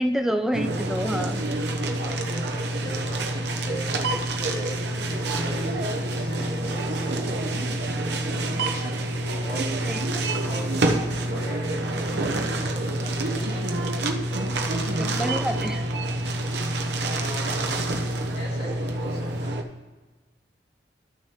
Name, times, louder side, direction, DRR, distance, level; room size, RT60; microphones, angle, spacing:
voice 1, 0.0-1.4 9.9-10.0 15.0-15.8, equal, 5° right, 7 dB, 0.4 m, -27 dB
sound 1, 0.5-19.6, right 1 dB, 70° right, 0.7 m, -27 dB
voice 2, 1.3-7.5 8.7-9.8 10.3-14.0 17.1-18.1 18.4-19.6, equal, 60° left, -4 dB, 2.9 m, -41 dB
13.5 x 6.2 x 2.9 m, 1.3 s
head